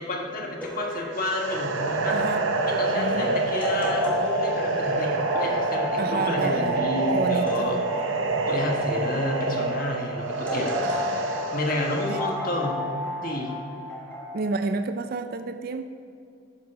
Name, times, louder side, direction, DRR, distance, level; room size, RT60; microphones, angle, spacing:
voice 1, 0.0-2.2 2.7-7.8 8.5-10.7 11.5-12.8 13.2-13.5, left 1 dB, 45° left, 0 dB, 1.4 m, -30 dB
sound 1, 0.6-14.3, left 2 dB, 5° left, 1.4 m, -34 dB
sound 2, 1.2-12.3, right 3 dB, 75° right, 0.7 m, -27 dB
voice 2, 2.1-2.5 2.9-3.5 6.0-6.9 7.1-7.8 10.8-11.3 12.0-12.2 14.3-15.8, right 3 dB, 50° right, 8 dB, 0.4 m, -30 dB
8.4 x 6.4 x 5.9 m, 2.5 s
head